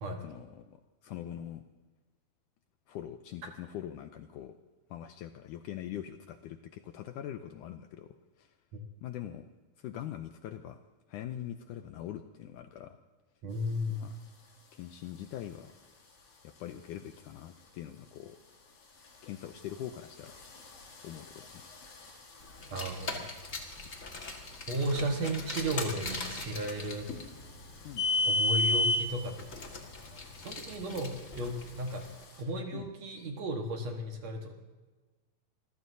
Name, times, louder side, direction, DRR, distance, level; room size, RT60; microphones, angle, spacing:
voice 1, 0.2-0.8 1.0-1.6 2.9-4.6 4.9-8.5 9.0-9.5 9.8-10.8 11.1-13.0 14.0-14.2 14.7-15.7 16.4-18.4 19.2-20.4 21.0-21.7 27.8-28.1 30.8-31.0 32.7-32.9, left 11 dB, 80° left, 7 dB, 1.9 m, -43 dB
voice 2, 13.4-14.0 22.7-23.3 24.7-27.1 28.3-29.4 30.1-32.0 32.4-34.5, right 1 dB, 55° right, 3 dB, 2.3 m, -34 dB
sound 1, 13.5-32.4, left 3 dB, 55° left, 3.8 m, -56 dB
Car, 22.6-32.1, left 2 dB, 40° left, 1.2 m, -33 dB
26.0 x 16.0 x 2.8 m, 1.3 s
omnidirectional pair, 4.2 m